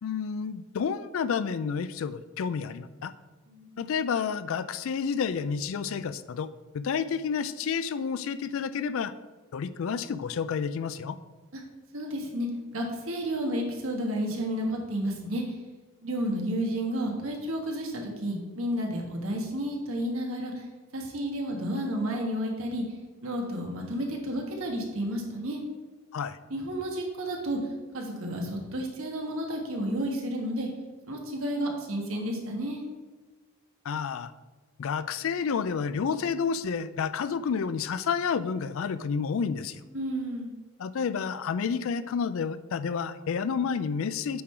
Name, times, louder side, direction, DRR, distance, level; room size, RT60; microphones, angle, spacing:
voice 1, 0.0-3.1 3.8-6.5 6.7-9.1 9.5-11.2 26.1-26.4 33.8-34.3 34.8-39.8 40.8-44.4, left 6 dB, 65° left, 14 dB, 0.3 m, -30 dB
voice 2, 3.5-3.8 11.9-15.4 16.0-20.6 20.9-22.8 23.2-25.6 26.5-27.6 27.9-30.7 31.1-32.8 39.9-40.5, equal, 70° right, 1 dB, 1.3 m, -31 dB
8.5 x 3.8 x 4.4 m, 1.3 s
head